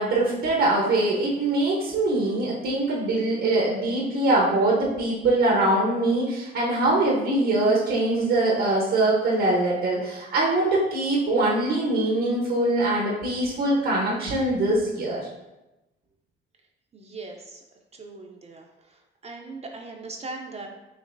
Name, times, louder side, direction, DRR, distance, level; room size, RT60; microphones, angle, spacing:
voice 1, 0.0-15.2, right 2 dB, 75° right, -4 dB, 1.0 m, -23 dB
voice 2, 16.9-17.6 18.0-18.6 19.2-20.7, right 3 dB, 35° right, 1 dB, 0.6 m, -39 dB
5.1 x 3.0 x 2.6 m, 0.99 s
cardioid pair, 90°, 20 cm